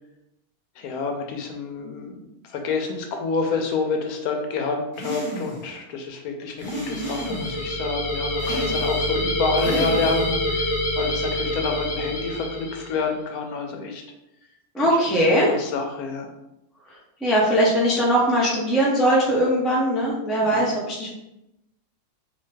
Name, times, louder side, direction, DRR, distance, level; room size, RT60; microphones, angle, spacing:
voice 1, 0.8-14.0 14.8-15.0 15.3-16.3 20.4-20.7, left 4 dB, 80° left, 3 dB, 1.1 m, -28 dB
sound 1, 4.9-5.7 6.6-7.6 8.4-9.1 9.6-10.4, right 1 dB, 35° right, 1.8 m, -33 dB
sound 2, 6.6-13.0, left 1 dB, 55° left, 1.0 m, -26 dB
voice 2, 14.7-15.5 17.2-21.1, equal, ahead, -4 dB, 0.4 m, -20 dB
3.2 x 2.8 x 3.2 m, 0.89 s
omnidirectional pair, 1.6 m